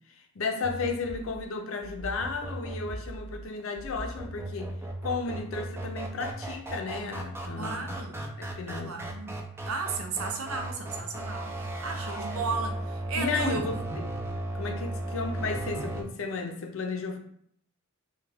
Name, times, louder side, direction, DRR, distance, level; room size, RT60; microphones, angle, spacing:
voice 1, 0.4-4.7 5.0-7.9 8.4-9.1 13.2-14.1 14.5-17.2, left 4 dB, 65° left, 0.5 m, -34 dB
sound 1, 0.6-16.0, right 1 dB, 10° right, 0.4 m, -36 dB
voice 2, 7.6-8.3 8.8-13.7, right 4 dB, 80° right, 0.6 m, -34 dB
3.5 x 2.3 x 3.3 m
head